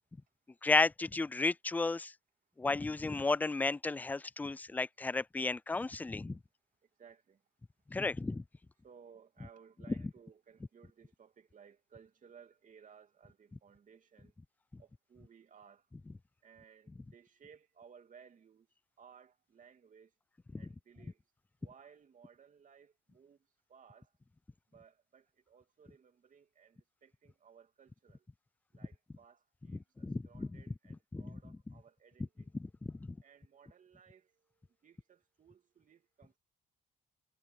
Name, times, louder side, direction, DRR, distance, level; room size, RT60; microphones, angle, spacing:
voice 1, 0.6-2.1 2.6-6.4 7.9-8.4 20.5-20.6 30.0-30.5 31.1-31.4 32.8-33.2, left 3 dB, 10° left, 0.3 m, -33 dB
voice 2, 6.8-7.4 8.8-14.3 14.8-15.9 16.4-18.7 19.0-20.1 20.6-21.2 21.6-24.1 24.7-28.3 28.7-32.5 32.8-32.9 33.2-36.4, right 7 dB, 40° right, 2.8 m, -60 dB
cardioid pair, 120°, 20 cm